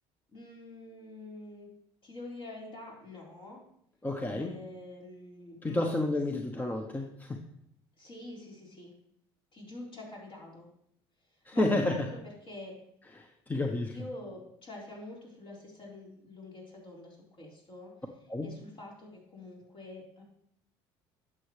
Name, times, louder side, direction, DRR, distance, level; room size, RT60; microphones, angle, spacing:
voice 1, 0.3-1.7 2.0-3.6 4.3-5.9 8.0-8.9 9.5-10.7 11.5-12.8 13.9-17.9 18.4-20.2, left 2 dB, 45° left, -3 dB, 4.1 m, -46 dB
voice 2, 4.0-4.6 5.6-7.4 11.4-12.1 13.1-13.9 18.3-18.5, left 2 dB, 15° left, 3 dB, 0.9 m, -30 dB
11.0 x 7.4 x 3.2 m, 0.73 s
supercardioid pair, 90°, 12 cm